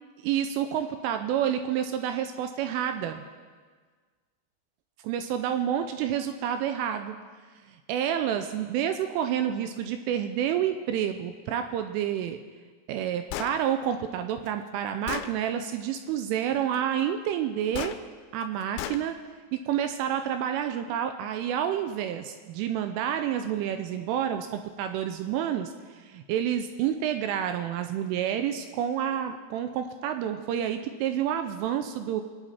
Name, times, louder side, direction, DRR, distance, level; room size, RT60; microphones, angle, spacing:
voice 1, 0.2-3.2 5.0-7.2 7.9-12.4 12.9-17.9 18.3-19.1 19.5-25.7 26.1-32.2, right 9 dB, 85° right, 7 dB, 3.0 m, -29 dB
Gunshot gunfire, 13.3-13.6 14.5-14.6 15.1-15.3 17.7-18.0 18.8-19.0, left 11 dB, 85° left, 3.4 m, -33 dB
24.5 x 9.0 x 4.3 m, 1.5 s
omnidirectional pair, 5.9 m